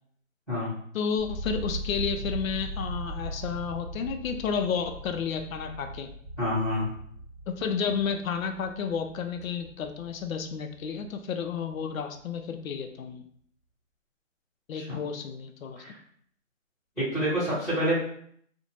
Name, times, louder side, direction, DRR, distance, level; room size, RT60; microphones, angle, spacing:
voice 1, 0.9-6.1 7.5-13.2 14.7-15.8, left 6 dB, 85° left, 6 dB, 0.5 m, -31 dB
sound 1, 1.2-11.2 11.5-12.2, right 1 dB, 30° right, 0.4 m, -39 dB
voice 2, 6.4-6.9 14.7-15.0 15.7-16.0 17.0-18.0, equal, ahead, -15 dB, 1.0 m, -27 dB
2.6 x 2.1 x 3.0 m, 0.64 s
hypercardioid pair, 165°, 39 cm